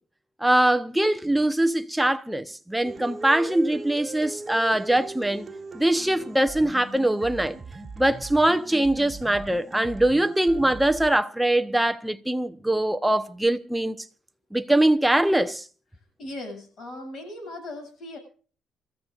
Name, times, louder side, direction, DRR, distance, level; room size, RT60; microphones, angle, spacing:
voice 1, 0.4-5.5 5.7-7.6 8.0-14.0 14.5-15.6, right 1 dB, 5° right, 1.0 m, -22 dB
sound 1, 2.8-11.1, right 4 dB, 25° right, 2.7 m, -39 dB
voice 2, 16.2-18.2, left 1 dB, 55° left, 7.7 m, -38 dB
27.5 x 14.5 x 2.6 m
cardioid pair, 100°, 0 cm